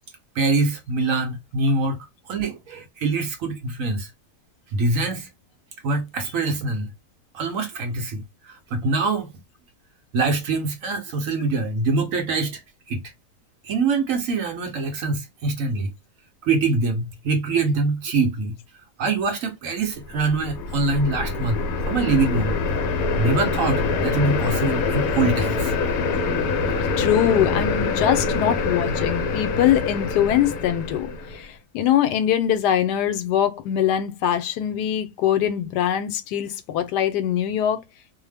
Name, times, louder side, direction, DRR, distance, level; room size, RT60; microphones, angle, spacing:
voice 1, 0.4-2.0 2.3-4.1 4.7-5.3 5.8-6.9 7.3-8.2 8.5-9.3 10.1-12.6 12.9-13.0 13.7-15.9 16.4-18.5 19.0-21.6 21.9-22.6 23.2-25.7, right 3 dB, 65° right, 0.9 m, -24 dB
sound 1, 20.0-31.4, left 4 dB, 70° left, 1.0 m, -25 dB
voice 2, 27.0-37.8, left 10 dB, 85° left, 1.2 m, -22 dB
2.7 x 2.0 x 3.2 m
omnidirectional pair, 1.7 m